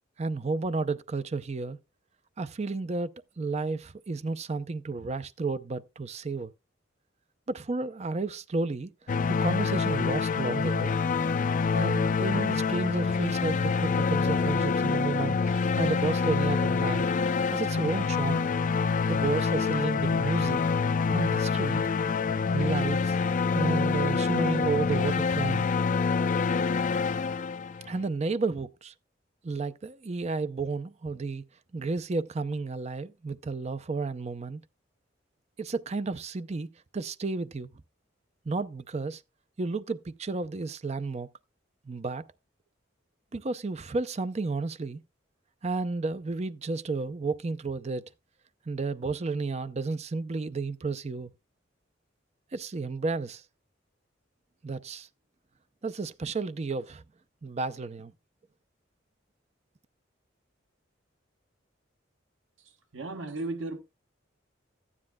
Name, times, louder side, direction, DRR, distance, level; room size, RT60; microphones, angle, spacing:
voice 1, 0.2-1.8 2.4-6.5 7.5-8.9 9.3-10.9 11.7-17.1 17.5-18.5 19.1-20.6 21.1-21.8 22.5-23.2 23.5-25.7 27.9-28.9 29.4-31.4 31.7-34.6 35.6-37.7 38.5-39.2 39.6-41.3 41.9-42.2 43.3-45.0 45.6-48.1 48.7-51.3 52.5-53.4 54.6-55.1 55.8-57.0 57.4-58.1, right 3 dB, 35° right, 0.5 m, -32 dB
sound 1, 9.1-28.0, left 5 dB, 45° left, 0.4 m, -26 dB
voice 2, 62.9-63.8, right 2 dB, 80° right, 1.1 m, -34 dB
14.0 x 9.7 x 2.2 m
head